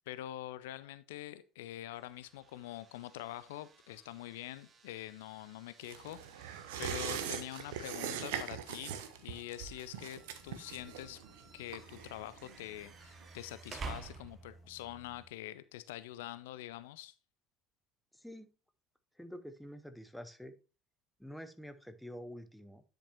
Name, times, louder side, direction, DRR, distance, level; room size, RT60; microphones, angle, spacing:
voice 1, 0.0-11.2 11.5-17.1, left 14 dB, 65° left, 0.3 m, -45 dB
sound 1, 1.9-14.7, right 4 dB, 35° right, 1.0 m, -53 dB
sound 2, 5.8-12.9 13.2-13.3, right 8 dB, 65° right, 0.6 m, -42 dB
sound 3, 10.2-15.3, right 2 dB, 20° left, 1.9 m, -59 dB
voice 2, 18.1-18.5 19.2-20.5 21.2-22.8, equal, ahead, 0.7 m, -47 dB
10.0 x 5.2 x 2.8 m
figure-of-eight pair, 60°, 0 cm